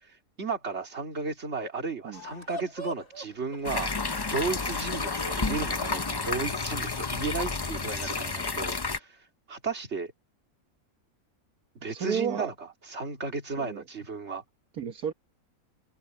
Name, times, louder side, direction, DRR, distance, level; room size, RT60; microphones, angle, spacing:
voice 1, 0.0-3.9 4.3-9.2 9.5-10.1 11.7-14.4, right 4 dB, 45° right, 2.8 m, -34 dB
sound 1, 2.1-8.6, right 1 dB, 60° left, 2.7 m, -46 dB
sound 2, 3.6-9.0, left 4 dB, 35° left, 0.3 m, -31 dB
voice 2, 11.8-12.5 13.6-13.8 14.7-15.1, right 8 dB, 75° right, 1.7 m, -32 dB
omnidirectional pair, 1.6 m